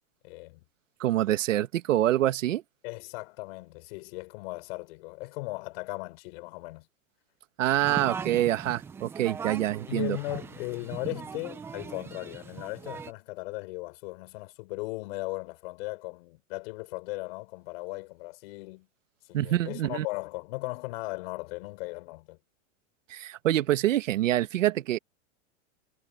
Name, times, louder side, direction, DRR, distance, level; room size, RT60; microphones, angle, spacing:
voice 1, 0.2-0.6 1.5-1.6 2.8-6.9 9.9-18.9 19.3-22.4, left 24 dB, 50° left, 4.3 m, -37 dB
voice 2, 1.0-2.6 7.6-10.2 19.3-20.0 23.1-25.0, right 13 dB, 85° right, 1.6 m, -26 dB
sound of the waves and chats, 7.8-13.1, right 6 dB, 5° right, 0.4 m, -39 dB
supercardioid pair, 150°, 37 cm